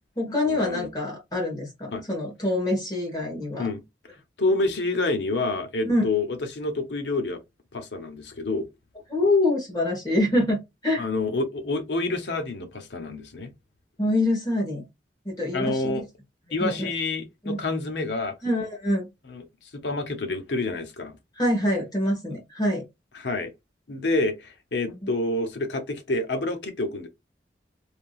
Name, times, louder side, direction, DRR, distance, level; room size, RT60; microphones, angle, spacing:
voice 1, 0.0-3.7 5.8-6.0 9.1-11.0 14.0-14.8 15.2-16.0 16.6-16.9 17.4-17.6 18.4-19.1 21.4-22.8 24.9-25.0, left 1 dB, 20° left, 1.3 m, -25 dB
voice 2, 0.6-0.9 1.9-2.0 3.6-3.8 4.4-7.4 7.7-8.7 11.0-13.5 15.5-16.0 16.5-18.3 19.3-19.4 19.7-21.1 23.2-23.5 23.9-27.1, left 2 dB, 75° left, 0.8 m, -28 dB
3.5 x 2.7 x 2.4 m
head